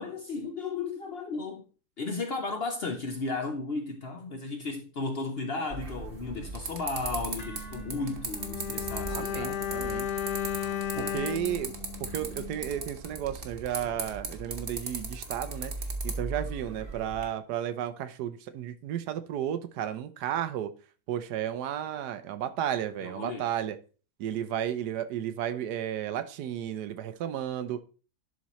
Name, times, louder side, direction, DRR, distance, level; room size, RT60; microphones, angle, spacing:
voice 1, 0.0-1.6 2.0-9.7 10.9-11.2 23.0-23.5, left 3 dB, 55° left, 0.7 m, -34 dB
sound 1, 5.7-17.3, right 3 dB, 40° right, 1.1 m, -38 dB
sound 2, 7.4-15.5, equal, 25° left, 1.6 m, -53 dB
Bowed string instrument, 8.3-12.8 13.1-13.2, left 10 dB, 85° left, 1.2 m, -34 dB
voice 2, 9.1-10.1 11.0-11.7 12.0-15.7 16.0-20.7 21.1-23.8 24.2-27.8, right 10 dB, 85° right, 1.3 m, -33 dB
11.0 x 4.1 x 3.0 m
omnidirectional pair, 1.7 m